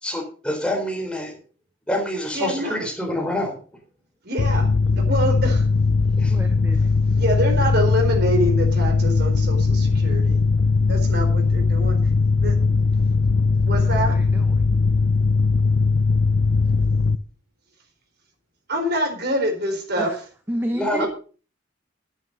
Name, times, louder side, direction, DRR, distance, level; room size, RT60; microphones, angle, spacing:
voice 1, 0.0-1.3 1.9-3.5 6.2-6.3 20.7-21.1, left 1 dB, 5° left, 1 dB, 3.9 m, -26 dB
voice 2, 2.3-2.9 4.2-4.7 4.9-5.7 7.2-10.4 10.9-12.0 12.4-12.5 13.7-14.2 18.7-20.1 21.0-21.1, equal, 60° right, 4 dB, 4.1 m, -25 dB
Mechanical fan, 4.4-17.2, left 4 dB, 80° left, 0.6 m, -19 dB
voice 3, 6.3-6.9 13.9-14.7 20.0-20.2 20.5-21.1, equal, 10° right, 6 dB, 1.0 m, -31 dB
11.0 x 9.6 x 5.3 m, 0.38 s
head